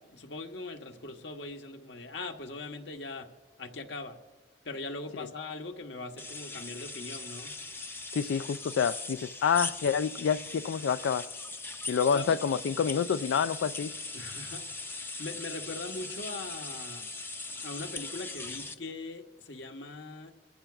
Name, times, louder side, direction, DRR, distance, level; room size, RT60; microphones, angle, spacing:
voice 1, 0.1-3.3 3.6-4.2 4.6-7.5 12.1-12.4 14.1-14.6 15.2-17.1 17.6-20.3, left 3 dB, 70° left, 4 dB, 1.2 m, -40 dB
sound 1, 6.2-18.7, left 3 dB, 10° left, 0.5 m, -40 dB
voice 2, 8.1-11.2 11.9-13.9, left 6 dB, 90° left, 11 dB, 0.3 m, -28 dB
25.5 x 14.0 x 2.4 m, 1.2 s
head